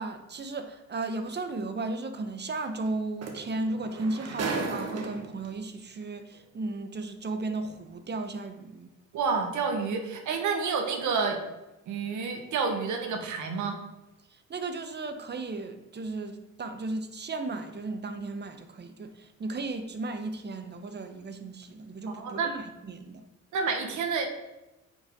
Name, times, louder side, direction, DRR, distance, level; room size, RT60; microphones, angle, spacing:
voice 1, 0.0-8.9 14.5-23.2, right 2 dB, 35° right, 8 dB, 0.9 m, -35 dB
sound 1, 1.0-1.2 2.9-3.0 3.2-5.5 6.4-6.5, right 3 dB, 55° right, 1.5 m, -34 dB
voice 2, 9.1-11.4 11.9-13.8 22.1-22.5 23.5-24.3, right 5 dB, 75° right, 5 dB, 1.3 m, -29 dB
9.1 x 5.4 x 3.7 m, 1.0 s
cardioid pair, 90°, 30 cm